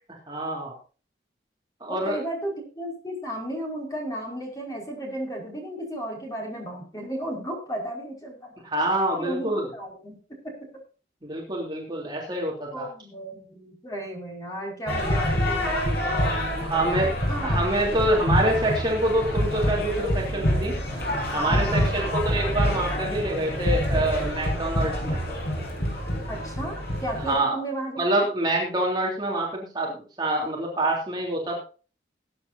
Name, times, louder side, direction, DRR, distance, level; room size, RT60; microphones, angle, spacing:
voice 1, 0.3-0.7 1.8-2.2 8.6-9.6 11.2-12.9 16.5-17.1 17.4-20.8 21.3-25.2 27.2-27.6 28.0-31.6, right 1 dB, 25° right, -2 dB, 3.3 m, -26 dB
voice 2, 1.9-8.5 9.2-10.7 12.7-15.7 17.3-17.6 21.3-22.2 26.1-28.2, right 1 dB, 20° left, 0 dB, 5.3 m, -34 dB
sound 1, 14.9-27.4, equal, 65° left, 6.6 m, -26 dB
20.0 x 9.8 x 2.8 m, 0.36 s
head